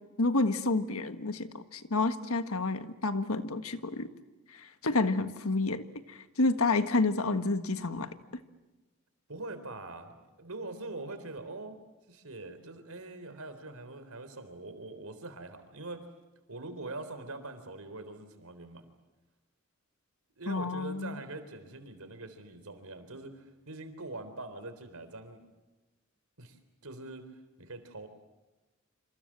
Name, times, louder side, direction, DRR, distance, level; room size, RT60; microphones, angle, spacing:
voice 1, 0.2-4.1 4.5-8.1 20.5-21.2, left 3 dB, 80° left, 9 dB, 1.6 m, -29 dB
voice 2, 9.3-11.8 12.1-16.0 16.5-18.9 20.4-25.4 26.4-26.6 26.8-27.3 27.6-28.1, right 2 dB, 90° right, 10 dB, 3.8 m, -43 dB
27.0 x 26.5 x 7.5 m, 1.1 s
head